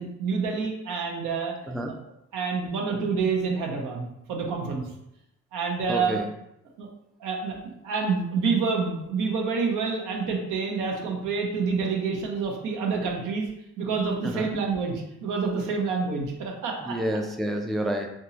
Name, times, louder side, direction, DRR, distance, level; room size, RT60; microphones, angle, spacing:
voice 1, 0.0-1.5 2.3-4.8 5.5-6.2 6.8-6.9 7.2-7.5 7.8-13.5 13.8-14.9 15.2-16.9, right 5 dB, 85° right, 0 dB, 0.9 m, -27 dB
voice 2, 5.9-6.3 14.2-14.5 16.8-18.1, equal, ahead, 3 dB, 0.3 m, -29 dB
3.5 x 2.8 x 2.8 m, 0.81 s
cardioid pair, 90°, 30 cm